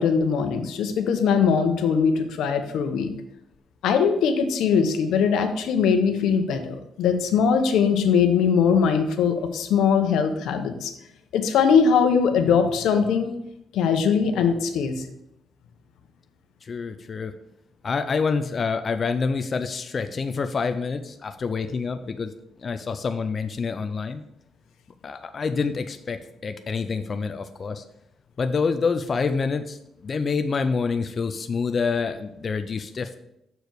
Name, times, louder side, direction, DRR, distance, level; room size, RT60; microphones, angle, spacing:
voice 1, 0.0-3.1 3.8-10.9 11.3-13.3 13.7-15.0, left 6 dB, 90° left, 7 dB, 0.8 m, -21 dB
voice 2, 16.6-17.3 17.8-22.3 22.6-24.2 25.0-27.8 28.4-33.2, left 5 dB, 30° left, 8 dB, 0.3 m, -27 dB
6.7 x 4.6 x 4.6 m, 0.80 s
cardioid pair, 160°, 0 cm